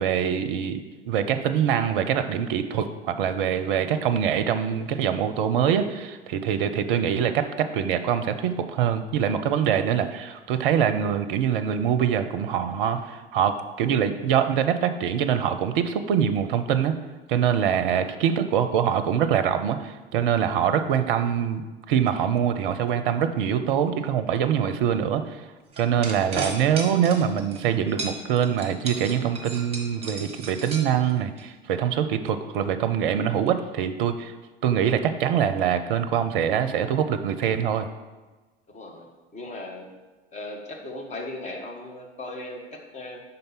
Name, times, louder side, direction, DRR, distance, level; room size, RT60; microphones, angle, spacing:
voice 1, 0.0-17.0 17.3-21.6 21.9-25.2 25.8-34.3 34.6-37.9, right 8 dB, 60° right, 9 dB, 0.5 m, -24 dB
voice 2, 17.7-18.2 21.0-21.1 38.7-39.9 40.3-43.2, left 2 dB, 25° left, 2 dB, 1.2 m, -38 dB
sound 1, 25.7-27.6 28.0-31.4, right 3 dB, 20° right, 1.2 m, -34 dB
5.3 x 3.9 x 5.7 m, 1.2 s
figure-of-eight pair, 80°, 30 cm